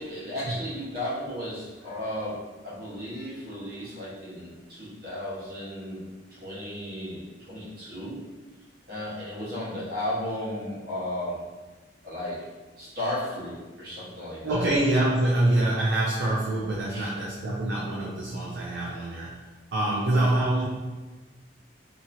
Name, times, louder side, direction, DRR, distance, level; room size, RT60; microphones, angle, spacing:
voice 1, 0.0-6.0 6.3-7.2 7.5-8.2 8.9-11.4 12.0-12.5 12.8-14.7 16.9-17.1 19.9-20.3, left 1 dB, 50° right, -9 dB, 1.3 m, -34 dB
voice 2, 14.4-19.5 19.7-20.6, right 1 dB, 70° right, -4 dB, 0.4 m, -25 dB
2.9 x 2.7 x 2.6 m, 1.2 s
head